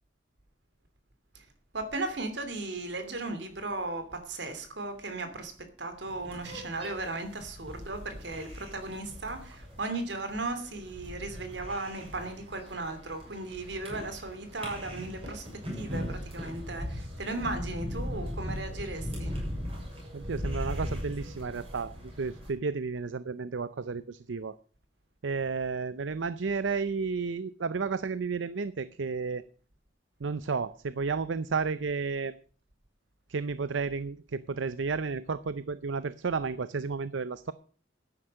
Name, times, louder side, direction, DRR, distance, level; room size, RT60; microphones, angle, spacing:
voice 1, 1.7-19.4, right 2 dB, 70° right, 2.8 m, -36 dB
sound 1, 6.0-22.5, equal, 30° right, 7.1 m, -39 dB
voice 2, 20.1-24.6 25.2-29.4 30.2-32.3 33.3-37.5, right 4 dB, 85° right, 0.6 m, -32 dB
12.5 x 9.9 x 6.4 m
head